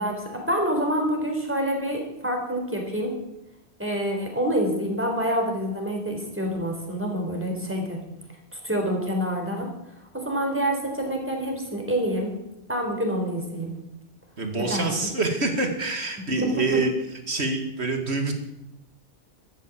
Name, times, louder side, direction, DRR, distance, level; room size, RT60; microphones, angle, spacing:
voice 1, 0.0-3.1 3.8-8.0 8.5-9.7 10.1-12.3 12.7-13.7 14.6-14.9 16.4-16.8, equal, 10° right, 1 dB, 4.0 m, -27 dB
voice 2, 14.4-16.9 17.3-18.3, right 3 dB, 70° right, 5 dB, 2.5 m, -26 dB
13.5 x 12.0 x 7.4 m, 0.89 s
omnidirectional pair, 1.1 m